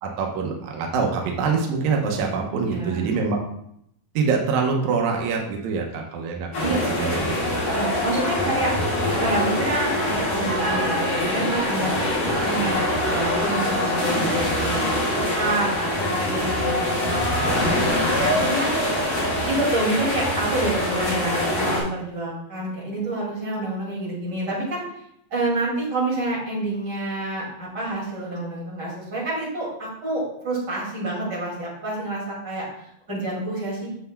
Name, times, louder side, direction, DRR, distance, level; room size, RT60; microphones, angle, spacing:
voice 1, 0.0-3.4 4.1-7.3, right 5 dB, 75° right, 0 dB, 1.7 m, -25 dB
voice 2, 2.6-3.1 6.6-6.7 7.2-8.8 9.1-12.8 13.1-19.1 19.5-24.8 25.3-33.9, right 2 dB, 35° right, -6 dB, 2.3 m, -28 dB
sound 1, 6.5-21.8, left 1 dB, 50° left, 3.3 m, -24 dB
7.6 x 6.9 x 2.2 m, 0.73 s
omnidirectional pair, 4.4 m